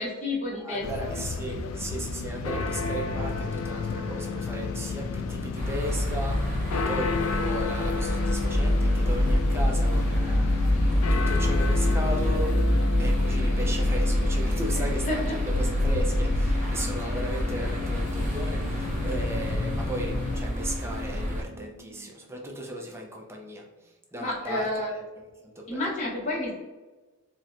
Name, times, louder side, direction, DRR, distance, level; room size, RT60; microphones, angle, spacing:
voice 1, 0.0-1.2 1.4-1.6 14.7-15.4 24.2-24.9 25.7-26.5, left 1 dB, 35° left, -5 dB, 0.9 m, -31 dB
voice 2, 0.6-10.6 10.9-12.5 13.0-23.6 24.1-25.0 25.4-25.8, right 1 dB, 10° right, 1 dB, 0.4 m, -36 dB
sound 1, 0.8-20.4, left 4 dB, 90° left, 0.3 m, -31 dB
sound 2, 5.6-21.4, equal, 40° right, 0.9 m, -26 dB
sound 3, 8.1-23.1 23.4-23.5, left 2 dB, 80° right, 0.6 m, -40 dB
4.2 x 2.1 x 2.5 m, 1.2 s
head